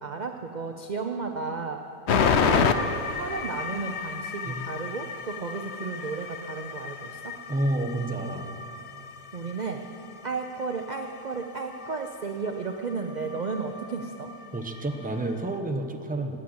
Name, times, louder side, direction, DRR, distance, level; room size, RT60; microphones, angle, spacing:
voice 1, 0.0-1.8 2.3-7.3 9.3-9.8 10.2-14.3, right 4 dB, 45° right, 4 dB, 0.5 m, -33 dB
sound 1, 2.1-15.6, left 5 dB, 55° left, 0.9 m, -31 dB
voice 2, 7.5-8.5 14.5-16.4, right 1 dB, 5° right, 5 dB, 0.7 m, -29 dB
17.0 x 10.5 x 7.9 m, 2.8 s
omnidirectional pair, 1.7 m